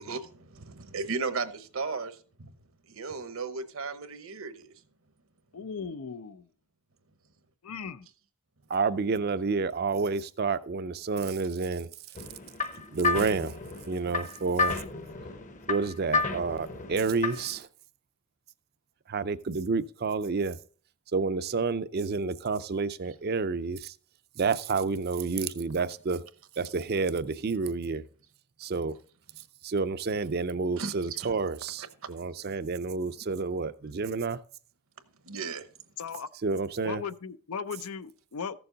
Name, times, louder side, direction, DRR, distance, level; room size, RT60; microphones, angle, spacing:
voice 1, 0.0-2.5 2.9-4.7 12.7-12.9 30.8-31.3 32.0-32.2 35.2-35.7, right 4 dB, 65° right, 0.9 m, -36 dB
voice 2, 5.5-6.4 7.6-8.1 36.0-36.3 36.8-38.6, left 6 dB, 85° left, 0.6 m, -37 dB
voice 3, 8.7-11.9 12.9-13.6 13.9-14.8 15.7-17.7 19.1-20.6 21.1-23.9 24.4-26.2 26.6-28.0 28.6-29.0 29.6-34.4 36.4-37.0, right 4 dB, 45° right, 0.5 m, -29 dB
sound 1, 12.2-17.6, left 4 dB, 35° left, 0.7 m, -32 dB
14.5 x 7.0 x 3.9 m
head